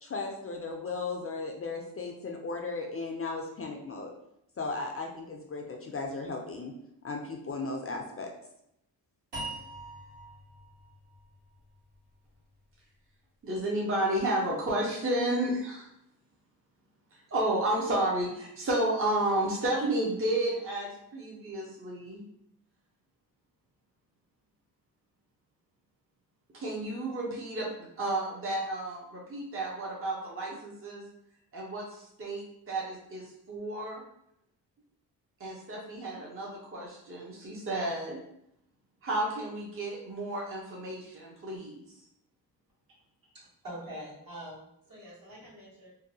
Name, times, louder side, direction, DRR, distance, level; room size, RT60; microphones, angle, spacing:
voice 1, 0.0-4.1 4.6-6.7 7.0-8.3, left 3 dB, 35° left, 1 dB, 0.4 m, -36 dB
sound 1, 9.3-12.5, right 2 dB, 75° right, 1.5 m, -43 dB
voice 2, 13.4-15.9 17.1-22.2 26.5-31.0 31.5-34.0 35.4-38.2 39.0-41.8, right 1 dB, 35° right, -3 dB, 0.7 m, -32 dB
voice 3, 43.3-45.9, equal, 55° right, -6 dB, 1.4 m, -45 dB
2.6 x 2.2 x 2.7 m, 0.78 s
cardioid pair, 65°, 40 cm